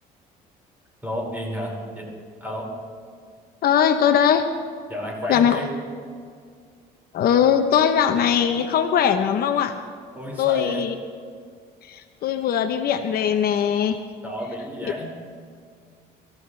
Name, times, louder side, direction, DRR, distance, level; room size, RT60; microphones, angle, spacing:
voice 1, 1.0-2.1 2.4-2.7 4.9-5.7 10.1-10.8 14.2-15.1, equal, 10° right, -2 dB, 5.5 m, -31 dB
voice 2, 3.6-4.4 5.3-5.6 7.1-9.8 10.4-10.9 11.8-14.0, left 8 dB, 65° left, 7 dB, 0.9 m, -20 dB
25.5 x 14.5 x 3.4 m, 2.1 s
cardioid pair, 110°, 17 cm